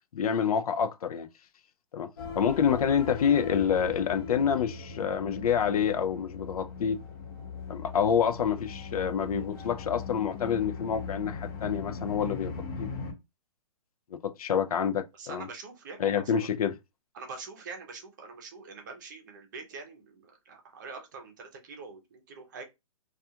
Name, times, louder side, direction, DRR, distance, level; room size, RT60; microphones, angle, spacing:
voice 1, 0.1-1.3 1.9-2.1 2.3-7.0 7.7-12.5 12.8-12.9 14.1-15.5 16.0-16.8, left 7 dB, 90° left, 0.5 m, -27 dB
sound 1, 2.2-13.1, left 5 dB, 40° left, 0.6 m, -39 dB
voice 2, 15.2-16.5 17.1-22.6, right 4 dB, 35° right, 0.6 m, -44 dB
2.3 x 2.3 x 2.7 m
hypercardioid pair, 170°, 18 cm